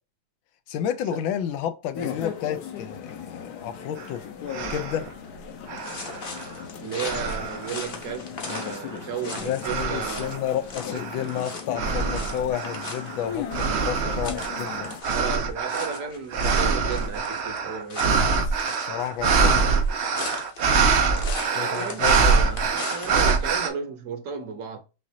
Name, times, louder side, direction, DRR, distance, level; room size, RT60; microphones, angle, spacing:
voice 1, 0.7-4.2 4.7-5.0 9.4-14.9 18.3-19.6 21.5-22.4, left 10 dB, 85° left, 1.5 m, -31 dB
sound 1, 1.9-15.0, left 7 dB, 60° left, 1.2 m, -38 dB
sound 2, 4.0-4.1 4.5-5.1 5.7-6.6 7.0-7.9 8.5-9.0 9.6-10.4 10.9-23.7, right 5 dB, 80° right, 0.6 m, -25 dB
sound 3, 5.8-23.5, left 4 dB, 40° left, 0.8 m, -40 dB
voice 2, 6.8-10.4 15.1-18.3 21.5-24.8, right 6 dB, 55° right, 1.0 m, -34 dB
6.1 x 2.5 x 2.7 m
omnidirectional pair, 2.1 m